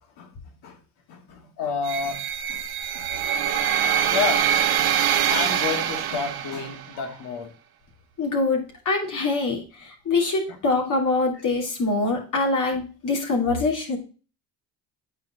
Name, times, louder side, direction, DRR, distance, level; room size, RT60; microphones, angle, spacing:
voice 1, 1.1-2.2 2.5-2.6 2.9-3.6 3.9-4.5 4.8-5.0 5.3-7.5 10.5-10.6, left 5 dB, 80° left, 4 dB, 2.0 m, -30 dB
sound 1, 1.8-6.9, right 9 dB, 70° right, 0.9 m, -24 dB
voice 2, 8.2-14.0, left 3 dB, 50° left, -1 dB, 2.9 m, -24 dB
8.9 x 4.2 x 3.6 m, 0.35 s
cardioid pair, 85°, 38 cm